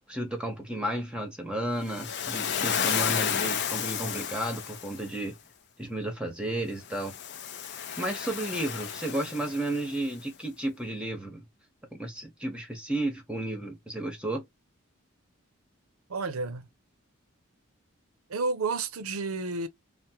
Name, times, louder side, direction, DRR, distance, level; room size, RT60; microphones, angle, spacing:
voice 1, 0.1-5.3 5.8-7.1 8.0-11.4 11.9-14.4, right 1 dB, 5° right, 0.7 m, -33 dB
Waves surf, 1.9-5.1 6.9-10.0, left 8 dB, 55° left, 0.5 m, -32 dB
voice 2, 16.1-16.7 18.3-19.7, right 3 dB, 80° right, 0.6 m, -31 dB
3.2 x 2.1 x 2.7 m
head